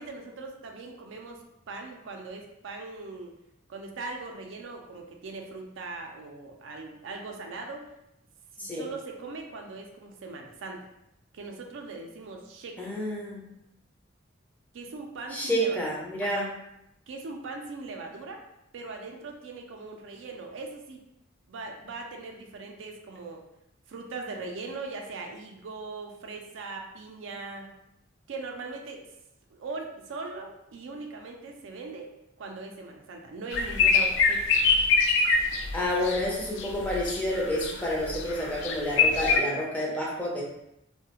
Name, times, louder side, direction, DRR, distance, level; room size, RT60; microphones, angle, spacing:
voice 1, 0.0-1.4 1.7-3.3 3.7-7.9 8.6-10.9 11.3-13.0 14.7-15.8 16.2-16.5 17.1-18.4 18.7-21.0 21.5-23.4 23.9-27.7 28.3-29.1 29.5-32.1 32.4-34.4, right 3 dB, 75° right, 2 dB, 0.4 m, -40 dB
voice 2, 12.8-13.5 15.3-16.6 35.7-40.4, equal, 10° left, -4 dB, 0.5 m, -29 dB
sound 1, 33.5-36.2 36.6-37.8 38.0-39.4, left 4 dB, 65° left, 0.3 m, -24 dB
2.3 x 2.1 x 2.9 m, 0.82 s
head